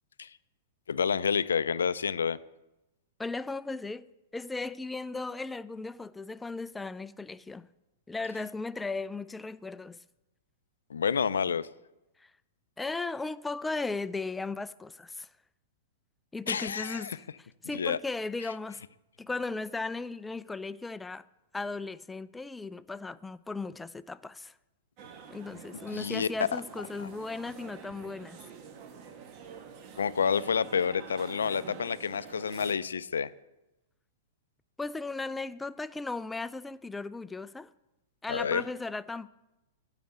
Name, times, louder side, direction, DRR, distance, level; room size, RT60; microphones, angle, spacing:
voice 1, 0.9-2.4 10.9-11.7 16.5-17.2 17.7-18.0 25.9-26.3 27.0-27.1 30.0-33.3 38.3-38.6, left 6 dB, 90° left, 0.3 m, -29 dB
voice 2, 3.2-4.1 4.3-7.7 8.1-10.0 12.2-12.3 12.8-15.3 16.3-17.2 17.6-18.8 19.2-21.2 21.5-24.5 25.3-28.4 34.8-37.7 38.2-39.3, left 3 dB, 10° left, 0.3 m, -36 dB
sound 1, 25.0-32.8, right 6 dB, 45° right, 1.1 m, -47 dB
9.4 x 4.9 x 7.9 m
hypercardioid pair, 125°, 0 cm